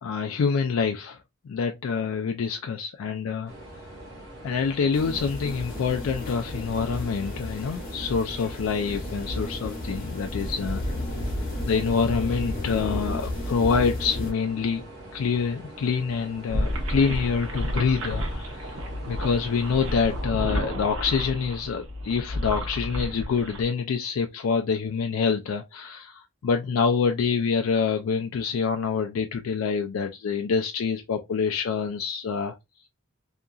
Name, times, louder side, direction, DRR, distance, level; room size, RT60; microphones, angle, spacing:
voice 1, 0.0-1.2 1.5-3.5 4.4-10.8 11.6-14.9 15.1-32.5, left 5 dB, 80° left, 0.4 m, -26 dB
sound 1, 3.5-20.3, right 1 dB, 55° right, 1.2 m, -44 dB
sound 2, 4.9-14.3, left 1 dB, 45° left, 0.9 m, -33 dB
sound 3, 16.5-23.6, equal, 85° right, 0.8 m, -31 dB
2.8 x 2.5 x 2.3 m
head